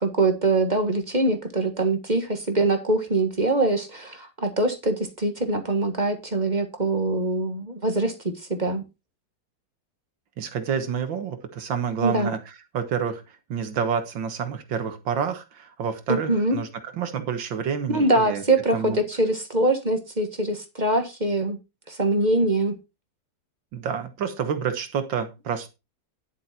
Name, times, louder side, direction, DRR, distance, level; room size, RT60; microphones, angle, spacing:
voice 1, 0.0-8.8 12.0-12.3 16.1-16.6 17.9-21.6 21.9-22.7, right 2 dB, 25° right, 6 dB, 1.6 m, -23 dB
voice 2, 10.4-12.4 12.7-13.2 13.5-18.4 18.7-19.0 23.7-25.7, right 7 dB, 80° right, 9 dB, 2.2 m, -28 dB
11.0 x 7.2 x 4.3 m, 0.26 s
omnidirectional pair, 2.0 m